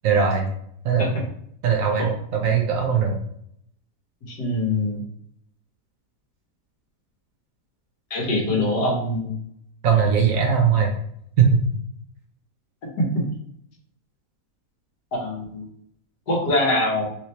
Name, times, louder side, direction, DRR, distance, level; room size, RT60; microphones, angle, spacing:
voice 1, 0.0-0.5 0.8-1.1 1.6-3.2 9.8-10.9 11.4-11.6, right 6 dB, 65° right, 2 dB, 0.9 m, -20 dB
voice 2, 4.3-5.0 8.1-9.3 12.8-13.2 15.1-15.6 16.3-17.0, left 1 dB, 85° left, -1 dB, 1.7 m, -23 dB
3.5 x 3.2 x 2.8 m, 0.71 s
omnidirectional pair, 1.7 m